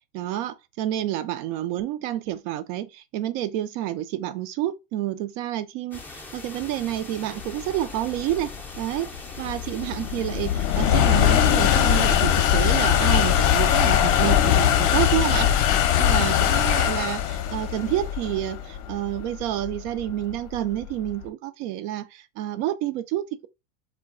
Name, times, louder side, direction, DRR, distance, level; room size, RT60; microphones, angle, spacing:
voice 1, 0.1-23.5, right 13 dB, 60° right, 0.5 m, -29 dB
sound 1, 5.9-14.9, left 3 dB, 5° left, 0.4 m, -41 dB
sound 2, 7.8-21.1, left 10 dB, 45° left, 0.6 m, -21 dB
2.3 x 2.2 x 3.6 m
supercardioid pair, 125°, 40 cm